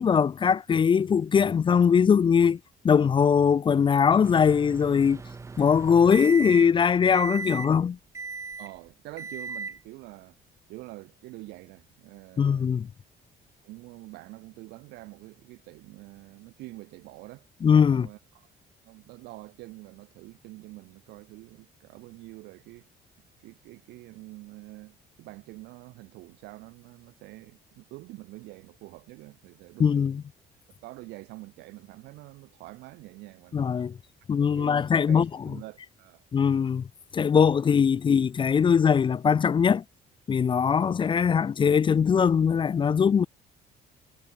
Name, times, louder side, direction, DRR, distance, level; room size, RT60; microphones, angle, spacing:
voice 1, 0.0-2.6 2.8-5.2 5.6-8.0 12.4-12.9 17.6-18.1 29.8-30.2 33.5-33.9 34.3-35.3 36.3-36.9 37.1-39.8 40.3-43.3, left 7 dB, 30° left, 0.5 m, -21 dB
Microwave oven, 4.2-6.8 7.1-7.7 8.1-8.7 9.2-9.8, right 4 dB, 15° right, 0.5 m, -37 dB
voice 2, 8.6-10.4 10.7-12.9 13.6-17.5 17.9-18.5 18.8-22.9 23.4-30.1 30.8-33.7 34.4-36.2, right 20 dB, 90° right, 5.0 m, -46 dB
cardioid pair, 110°, 17 cm